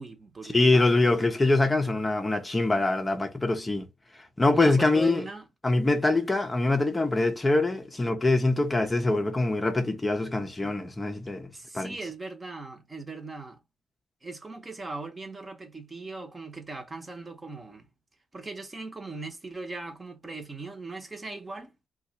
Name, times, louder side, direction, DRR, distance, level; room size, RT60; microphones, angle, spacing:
voice 1, 0.0-1.0 4.5-5.5 6.1-6.2 11.5-13.6 14.2-17.9 18.3-21.9, right 3 dB, 25° right, 1.0 m, -39 dB
voice 2, 0.5-3.9 4.1-5.3 5.6-11.5 11.7-11.9, left 2 dB, 15° left, 0.6 m, -24 dB
2.7 x 2.3 x 4.0 m
cardioid pair, 90°, 0 cm